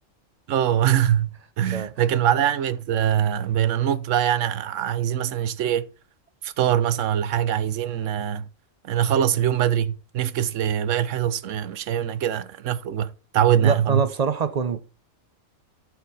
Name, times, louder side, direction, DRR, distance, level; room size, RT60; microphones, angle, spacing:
voice 1, 0.5-1.3 1.6-5.9 6.4-8.4 8.8-14.0, right 10 dB, 70° right, 1.0 m, -23 dB
voice 2, 13.6-14.8, right 5 dB, 50° right, 0.5 m, -25 dB
12.5 x 4.7 x 4.0 m
omnidirectional pair, 1.4 m